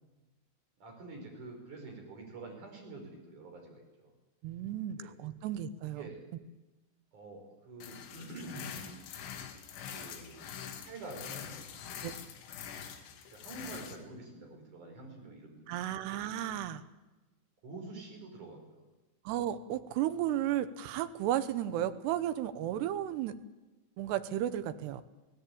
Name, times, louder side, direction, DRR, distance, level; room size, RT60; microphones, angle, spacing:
voice 1, 0.8-4.1 4.9-5.1 5.9-6.3 7.1-9.4 9.9-11.6 12.7-12.8 13.3-15.6 16.0-16.6 17.6-18.8, right 2 dB, 40° right, 2 dB, 6.3 m, -47 dB
voice 2, 4.4-6.1 12.0-12.1 15.7-16.8 19.3-23.3 24.0-25.0, right 12 dB, 75° right, 11 dB, 2.6 m, -34 dB
sound 1, 7.8-14.0, left 8 dB, 75° left, 4.1 m, -45 dB
24.0 x 16.5 x 8.6 m, 1.1 s
omnidirectional pair, 5.7 m